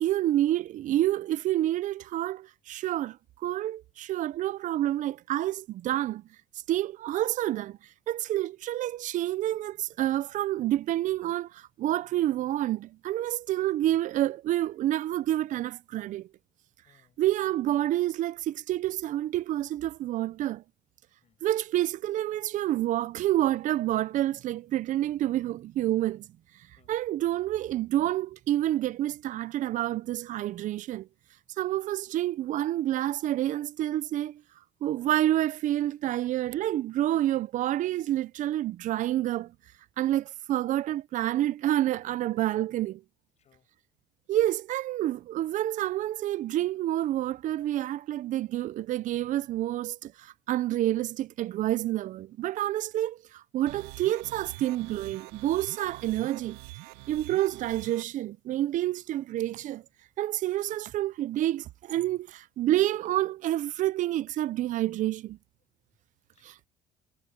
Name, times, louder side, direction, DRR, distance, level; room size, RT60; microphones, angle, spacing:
voice 1, 0.0-6.2 6.7-7.8 8.1-16.3 17.2-20.6 21.4-26.3 26.9-31.1 31.6-34.4 34.8-39.5 40.0-43.0 44.3-56.6 57.1-59.8 60.2-65.4, right 13 dB, 55° right, 0.6 m, -28 dB
voice 2, 16.9-17.2 21.2-21.4 26.7-26.9 40.0-40.2 43.4-43.7 61.9-62.2 66.3-66.7, left 8 dB, 45° left, 7.3 m, -64 dB
sound 1, 53.7-58.0, right 21 dB, 85° right, 0.9 m, -45 dB
supercardioid pair, 90°, 16 cm